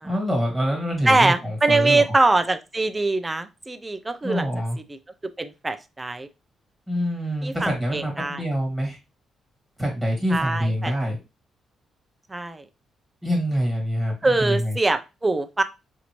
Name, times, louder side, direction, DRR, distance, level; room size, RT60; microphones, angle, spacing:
voice 1, 0.0-2.0 4.2-4.8 6.9-9.0 9.8-11.2 13.2-14.8, equal, ahead, 0 dB, 1.8 m, -25 dB
voice 2, 1.1-4.5 5.4-6.3 7.4-8.4 10.3-10.9 12.3-12.6 14.2-15.6, right 2 dB, 15° right, 9 dB, 0.4 m, -23 dB
5.6 x 2.6 x 3.0 m, 0.27 s
cardioid pair, 155°, 0 cm